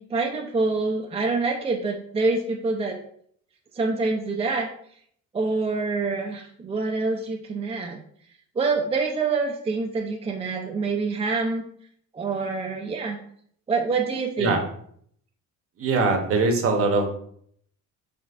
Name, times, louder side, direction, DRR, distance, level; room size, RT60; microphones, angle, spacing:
voice 1, 0.0-3.0 3.7-4.7 5.3-8.0 8.6-11.6 12.1-13.2 13.7-14.6, right 3 dB, 20° right, 1 dB, 0.4 m, -26 dB
voice 2, 15.8-17.0, right 3 dB, 45° right, 4 dB, 0.8 m, -22 dB
5.0 x 3.1 x 2.4 m, 0.65 s
cardioid pair, 115°, 31 cm